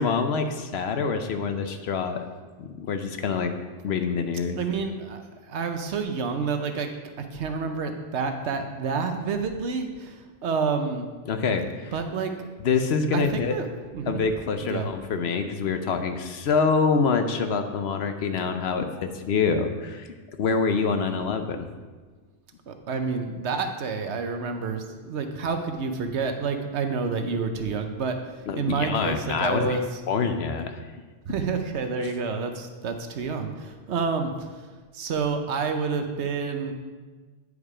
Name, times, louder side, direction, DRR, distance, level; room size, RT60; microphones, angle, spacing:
voice 1, 0.0-2.2 2.6-3.5 3.8-4.6 11.3-11.9 12.6-13.6 14.1-20.1 20.4-21.7 28.5-29.8 30.1-30.8, left 5 dB, 65° left, 7 dB, 0.9 m, -26 dB
voice 2, 4.6-5.2 5.5-6.9 7.2-11.1 11.9-12.3 13.1-13.7 13.9-14.2 14.6-14.9 22.7-28.2 28.6-29.8 31.3-34.5 34.9-36.7, right 5 dB, 70° right, 6 dB, 1.0 m, -29 dB
9.5 x 5.0 x 4.8 m, 1.4 s
omnidirectional pair, 1.2 m